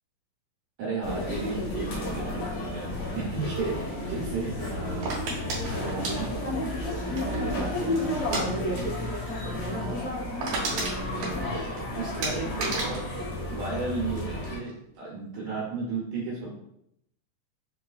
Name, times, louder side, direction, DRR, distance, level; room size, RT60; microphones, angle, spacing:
voice 1, 0.8-8.8 9.1-10.0 10.7-11.5 12.0-13.0 13.2-16.5, right 3 dB, 80° right, -5 dB, 1.8 m, -35 dB
sound 1, 1.0-14.6, left 1 dB, 85° left, 1.3 m, -32 dB
sound 2, 5.0-7.6 8.2-8.5 8.8-9.0 9.3-9.4 9.8-9.9 10.1-11.8 12.2-14.2 14.5-15.0, right 3 dB, 60° right, 2.5 m, -33 dB
5.9 x 3.2 x 2.3 m, 0.74 s
omnidirectional pair, 4.7 m